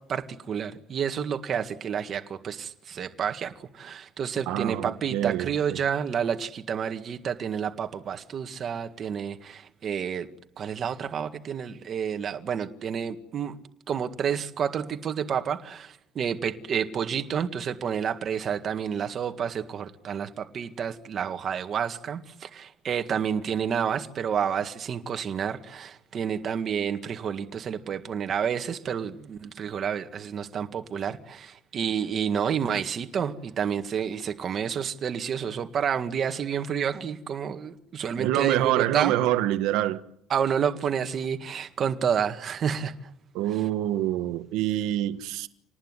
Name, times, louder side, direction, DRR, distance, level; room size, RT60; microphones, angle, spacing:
voice 1, 0.1-10.3 10.6-13.6 13.9-39.1 40.3-42.9, right 7 dB, 35° right, 1.9 m, -29 dB
voice 2, 4.5-5.8 38.2-40.0 43.3-45.5, right 13 dB, 75° right, 1.5 m, -26 dB
28.0 x 19.5 x 9.9 m
cardioid pair, 165°, 0 cm